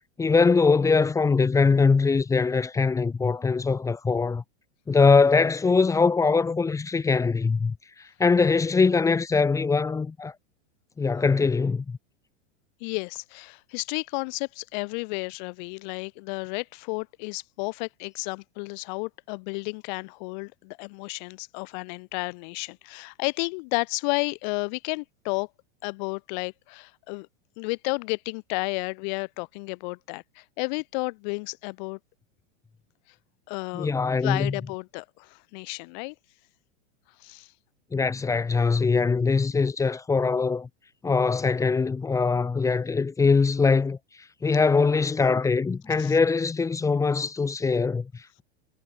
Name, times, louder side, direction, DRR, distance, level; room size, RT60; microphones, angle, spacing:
voice 1, 0.2-4.4 4.9-7.8 8.2-10.3 11.0-12.0 33.7-34.6 37.9-40.7 41.0-44.0 44.4-48.4, left 4 dB, 10° left, 1.4 m, -22 dB
voice 2, 12.8-25.5 25.8-27.3 27.6-32.0 33.5-33.9 34.2-36.1 37.2-37.5 46.0-46.1, left 31 dB, 40° left, 0.8 m, -32 dB
supercardioid pair, 155°, 34 cm